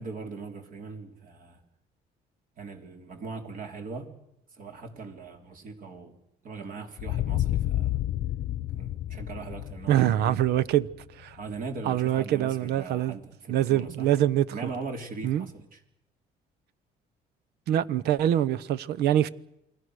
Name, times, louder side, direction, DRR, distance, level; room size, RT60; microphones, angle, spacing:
voice 1, 0.0-1.6 2.6-4.1 4.6-6.2 6.4-7.9 8.8-10.4 11.4-14.1 14.5-15.8, right 4 dB, 55° right, 3.7 m, -40 dB
sound 1, 7.0-11.6, left 14 dB, 65° left, 0.8 m, -31 dB
voice 2, 9.9-10.9 11.2-11.4 11.9-13.1 13.5-14.5 15.2-15.5 17.7-19.3, right 12 dB, 75° right, 0.9 m, -24 dB
29.0 x 21.0 x 6.5 m
cardioid pair, 110°, 17 cm